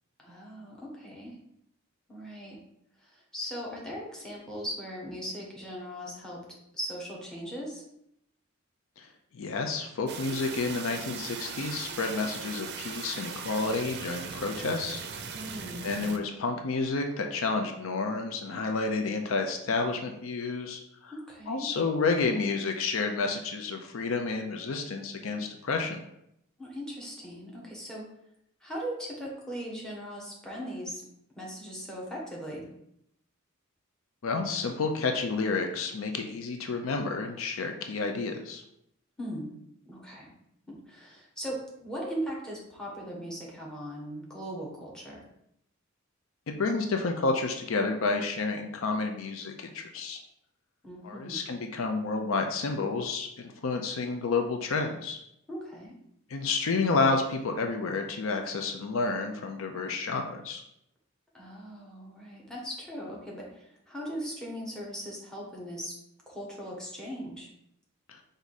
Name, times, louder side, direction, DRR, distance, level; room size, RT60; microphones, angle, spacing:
voice 1, 0.2-1.4 2.1-2.6 3.0-7.8 15.3-15.9 21.1-21.7 26.6-28.0 28.6-31.1 31.3-32.7 39.2-39.5 39.9-40.3 40.7-45.2 50.8-51.4 55.5-56.0 61.3-66.0 66.3-67.5, equal, 5° left, -3 dB, 1.1 m, -39 dB
voice 2, 9.3-15.0 15.8-21.1 21.5-26.0 34.2-38.6 46.6-50.2 51.0-55.2 56.3-60.6, left 3 dB, 70° left, 4 dB, 0.5 m, -30 dB
sound 1, 10.1-16.2, right 6 dB, 55° right, 0.5 m, -39 dB
4.6 x 2.6 x 4.0 m, 0.77 s
head